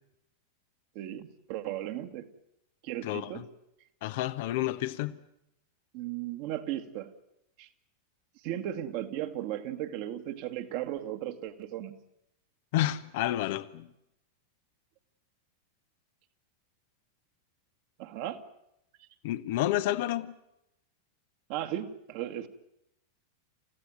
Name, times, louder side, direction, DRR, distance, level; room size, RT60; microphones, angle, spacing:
voice 1, 0.9-2.3 2.8-3.5 5.9-7.1 7.6-7.7 8.4-11.9 18.0-18.4 21.5-22.5, right 12 dB, 45° right, 2.1 m, -36 dB
voice 2, 3.0-3.4 4.0-5.2 12.7-13.9 19.2-20.3, left 14 dB, 50° left, 1.1 m, -30 dB
29.0 x 16.0 x 9.5 m
figure-of-eight pair, 90°, 0 cm